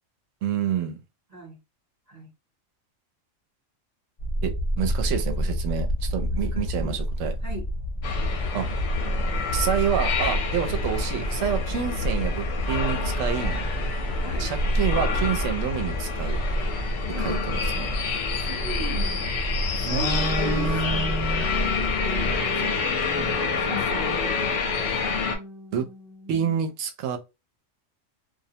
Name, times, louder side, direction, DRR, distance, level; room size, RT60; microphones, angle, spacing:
voice 1, 0.4-1.0 4.4-7.4 8.5-8.7 9.5-13.6 14.4-16.4 17.2-17.9 19.8-21.5 25.7-25.9 26.3-27.2, right 7 dB, 75° right, 0.9 m, -28 dB
sound 1, 4.2-22.4, equal, 45° left, 0.6 m, -30 dB
voice 2, 6.3-7.0 7.4-7.7 14.2-14.5 17.1-17.3 18.3-19.4 19.7-21.3 21.5-22.3 22.5-24.4 25.2-26.5, equal, 35° right, 0.8 m, -39 dB
sound 2, 8.0-25.4, left 4 dB, 70° left, 0.9 m, -27 dB
2.4 x 2.0 x 2.7 m
omnidirectional pair, 1.3 m